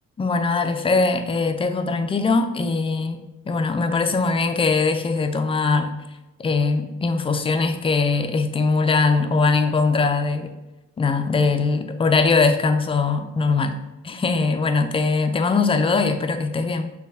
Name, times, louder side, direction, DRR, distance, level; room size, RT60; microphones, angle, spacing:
voice 1, 0.2-3.2 3.5-6.0 6.4-10.5 11.0-16.9, left 4 dB, 20° left, 0.3 m, -21 dB
6.2 x 2.3 x 2.6 m
cardioid pair, 90°, 30 cm